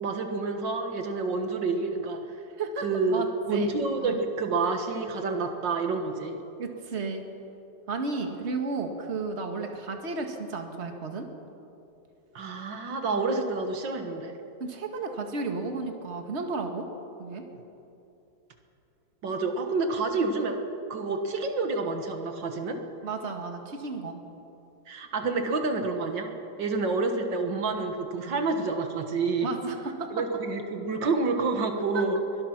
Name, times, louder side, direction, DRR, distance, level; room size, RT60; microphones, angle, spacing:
voice 1, 0.0-2.2 2.8-6.4 12.4-14.3 19.2-20.6 20.9-22.8 24.9-26.3 26.6-29.5 30.1-32.2, right 3 dB, 80° right, 5 dB, 2.1 m, -28 dB
voice 2, 2.6-3.7 4.0-4.2 6.6-7.2 7.9-11.3 14.6-16.9 17.2-17.4 23.0-24.2 28.1-28.4 29.4-30.1 31.9-32.0, right 4 dB, 35° right, 4 dB, 1.9 m, -33 dB
23.0 x 19.5 x 6.0 m, 2.8 s
omnidirectional pair, 2.0 m